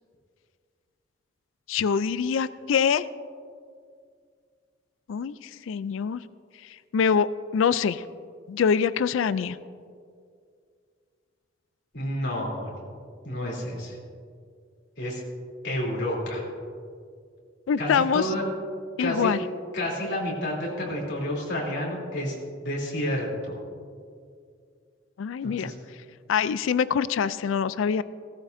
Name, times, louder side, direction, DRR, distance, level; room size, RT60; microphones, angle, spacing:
voice 1, 1.7-3.0 5.1-5.3 5.7-6.2 6.9-7.3 7.5-8.0 8.5-9.6 17.7-18.3 19.0-19.4 25.2-25.7 26.3-28.0, left 6 dB, 85° left, 16 dB, 0.3 m, -24 dB
voice 2, 11.9-12.8 13.2-14.0 15.0-15.2 15.6-16.4 17.8-18.4 19.0-19.3 19.7-22.3 22.6-23.6 25.4-25.7, left 1 dB, 60° left, -3 dB, 3.1 m, -30 dB
17.0 x 14.0 x 2.6 m, 2.2 s
head